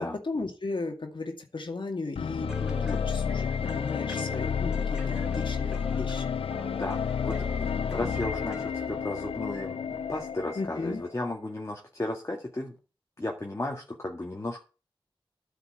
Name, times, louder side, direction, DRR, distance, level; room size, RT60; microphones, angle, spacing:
voice 1, 0.2-6.3 10.6-11.0, left 3 dB, 60° left, 3 dB, 2.3 m, -35 dB
sound 1, 2.2-11.2, left 7 dB, 80° left, 0.4 m, -31 dB
sound 2, 2.5-8.9, equal, 5° right, 3.9 m, -44 dB
voice 2, 6.7-12.8 13.2-14.6, left 2 dB, 30° left, 0 dB, 2.0 m, -34 dB
9.6 x 6.0 x 8.0 m, 0.33 s
cardioid pair, 45°, 9 cm